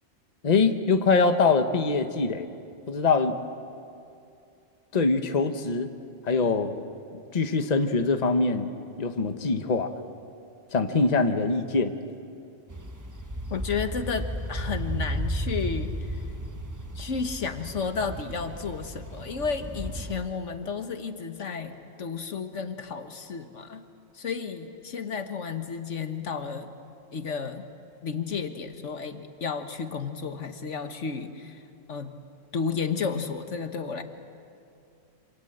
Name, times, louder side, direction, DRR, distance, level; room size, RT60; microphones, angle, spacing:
voice 1, 0.4-2.5 2.9-3.4 4.9-5.9 6.3-6.8 7.1-8.7 9.0-9.9 10.7-11.9, left 4 dB, 35° left, 6 dB, 1.2 m, -23 dB
sound 1, 12.7-20.2, right 1 dB, 15° right, 1.0 m, -34 dB
voice 2, 13.5-16.2 16.9-23.8 24.1-26.7 27.1-27.6 28.0-32.1 32.5-34.0, left 5 dB, 70° left, 7 dB, 1.6 m, -32 dB
27.0 x 26.5 x 7.9 m, 2.5 s
omnidirectional pair, 1.3 m